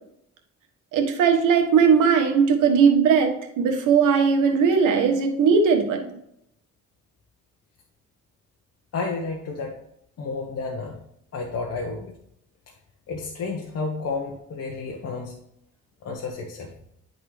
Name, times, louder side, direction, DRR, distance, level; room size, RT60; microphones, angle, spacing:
voice 1, 0.9-6.1, right 6 dB, 90° right, 3 dB, 1.3 m, -19 dB
voice 2, 8.9-9.7 10.2-11.0 11.3-12.1 13.1-15.3 16.0-16.7, left 4 dB, 55° left, 0 dB, 1.1 m, -31 dB
10.5 x 3.9 x 3.2 m, 0.76 s
cardioid pair, 90°, 30 cm